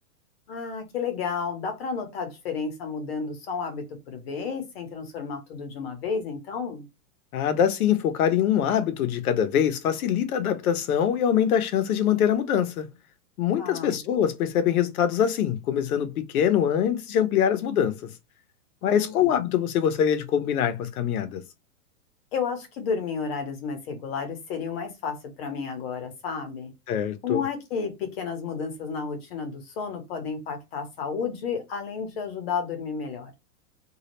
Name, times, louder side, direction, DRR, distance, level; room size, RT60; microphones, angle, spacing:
voice 1, 0.5-6.8 13.6-14.0 18.8-19.4 22.3-26.7 27.2-33.3, left 5 dB, 40° left, 0.8 m, -32 dB
voice 2, 7.3-12.9 13.4-18.1 18.8-21.4 26.9-27.4, left 9 dB, 70° left, 0.7 m, -24 dB
2.3 x 2.0 x 2.8 m
supercardioid pair, 160°, 45 cm